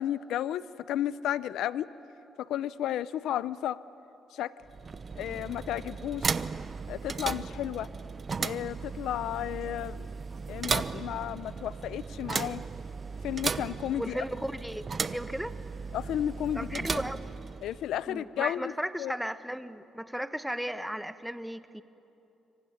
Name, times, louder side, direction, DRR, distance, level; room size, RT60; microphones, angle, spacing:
voice 1, 0.0-1.9 2.4-3.8 4.3-4.5 5.2-6.4 6.9-7.9 8.4-10.1 10.5-12.6 13.2-14.2 15.9-17.0 17.6-18.7 19.0-19.1, left 11 dB, 80° left, 16 dB, 0.6 m, -33 dB
sound 1, 4.6-17.9, right 5 dB, 40° right, 0.8 m, -36 dB
voice 2, 14.0-15.6 16.5-17.2 18.1-21.8, equal, 5° right, 11 dB, 1.1 m, -35 dB
26.0 x 24.0 x 9.6 m, 3.0 s
cardioid pair, 90°, 0 cm